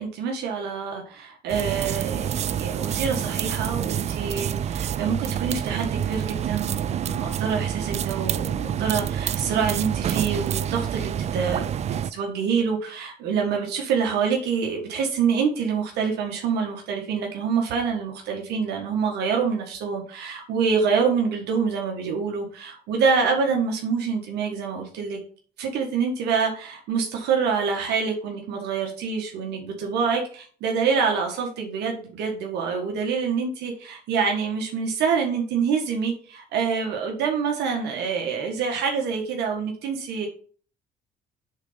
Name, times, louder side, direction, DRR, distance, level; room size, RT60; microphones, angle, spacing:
voice 1, 0.0-25.2 25.6-40.3, right 6 dB, 80° right, 2 dB, 1.6 m, -26 dB
sound 1, 1.5-12.1, right 9 dB, 40° right, 0.4 m, -28 dB
6.3 x 4.0 x 5.1 m, 0.42 s
cardioid pair, 110°, 17 cm